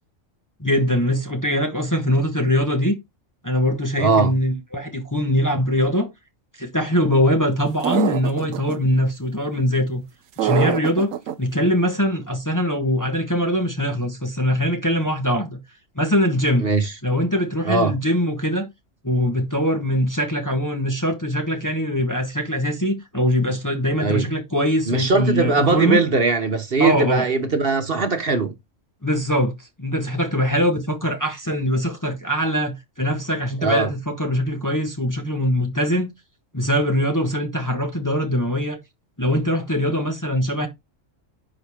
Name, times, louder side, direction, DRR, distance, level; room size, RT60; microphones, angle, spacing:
voice 1, 0.6-3.0 3.4-6.1 6.6-10.0 10.4-11.1 11.4-15.6 15.9-16.7 17.0-18.7 19.0-26.0 26.8-27.3 29.0-36.1 36.5-38.8 39.2-40.7, equal, 15° left, 1.2 m, -22 dB
voice 2, 4.0-4.3 16.6-16.9 17.6-17.9 24.0-24.3 24.9-28.5 33.6-33.9, right 4 dB, 45° right, 1.4 m, -20 dB
sound 1, 7.8-8.8 10.4-11.3, right 10 dB, 90° right, 1.1 m, -23 dB
10.0 x 4.9 x 3.5 m
omnidirectional pair, 1.3 m